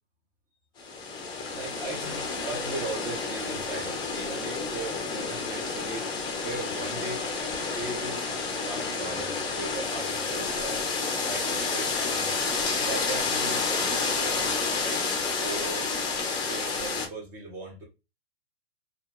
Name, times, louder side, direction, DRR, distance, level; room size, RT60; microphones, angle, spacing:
sound 1, 0.8-17.1, left 4 dB, 15° left, 0.6 m, -30 dB
voice 1, 1.3-7.3 7.6-8.2 8.6-10.9 11.2-12.3 12.8-15.1 15.4-16.0 16.3-17.8, right 3 dB, 25° right, 0.7 m, -38 dB
2.5 x 2.1 x 3.3 m
figure-of-eight pair, 115°, 31 cm